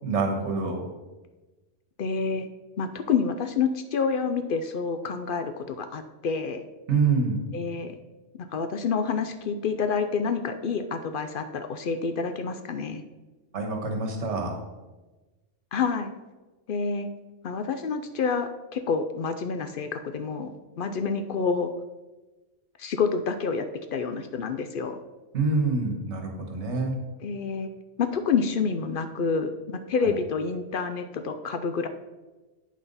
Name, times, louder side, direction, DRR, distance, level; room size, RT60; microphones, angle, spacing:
voice 1, 0.0-0.8 6.9-7.4 13.5-14.5 25.3-27.0 30.0-30.1, right 4 dB, 65° right, 2 dB, 1.6 m, -26 dB
voice 2, 2.0-2.5 2.8-6.6 7.5-8.0 8.4-13.0 15.7-16.1 16.7-17.1 17.4-20.5 20.8-21.7 22.8-23.6 23.9-25.0 27.2-27.7 28.0-31.9, left 5 dB, 60° left, 8 dB, 0.6 m, -28 dB
8.5 x 5.7 x 4.0 m, 1.2 s
omnidirectional pair, 1.3 m